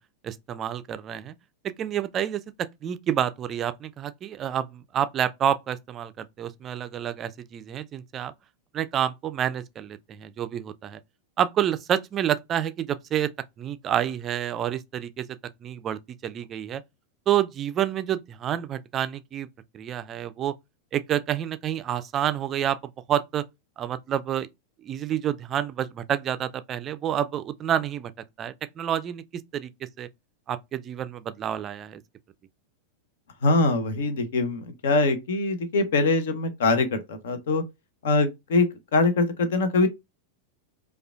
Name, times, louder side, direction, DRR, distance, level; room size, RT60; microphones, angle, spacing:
voice 1, 0.2-1.3 1.8-8.3 8.7-11.0 11.4-13.3 13.6-15.3 15.6-16.8 17.3-19.5 19.7-20.5 20.9-22.8 23.1-23.4 23.8-24.5 24.8-28.1 28.4-29.2 29.5-29.7 30.0-30.1 30.5-32.0, right 10 dB, 30° right, 0.4 m, -28 dB
voice 2, 33.4-37.6 38.0-38.7 38.9-39.9, left 3 dB, 60° left, 0.8 m, -23 dB
4.8 x 2.4 x 2.3 m
figure-of-eight pair, 90°, 0 cm